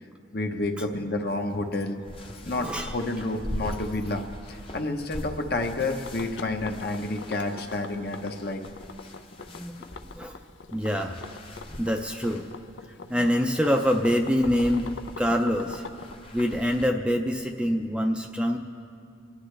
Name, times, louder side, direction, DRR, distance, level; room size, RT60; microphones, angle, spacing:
voice 1, 0.3-2.0 2.4-8.6, left 2 dB, 55° left, 4 dB, 1.0 m, -30 dB
sound 1, 1.3-16.9, left 1 dB, 30° left, 0.8 m, -42 dB
voice 2, 2.5-2.9 9.5-9.9 10.1-10.4 10.7-11.2 11.5-12.4 13.1-15.8 16.3-18.6, equal, 5° right, 3 dB, 0.5 m, -25 dB
sound 2, 5.8-16.1, left 4 dB, 75° left, 0.5 m, -42 dB
29.0 x 10.0 x 3.3 m, 2.4 s
head